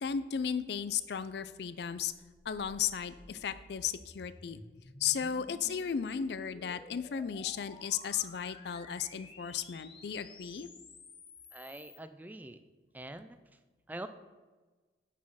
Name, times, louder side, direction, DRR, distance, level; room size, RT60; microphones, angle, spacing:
voice 1, 0.0-2.1 2.5-4.6 5.0-10.7, left 7 dB, 65° left, 13 dB, 0.4 m, -35 dB
sound 1, 2.1-12.0, left 2 dB, 30° left, 0.8 m, -54 dB
voice 2, 11.5-12.6 12.9-13.4 13.9-14.1, right 1 dB, 10° right, 10 dB, 0.3 m, -44 dB
8.4 x 5.6 x 4.7 m, 1.3 s
head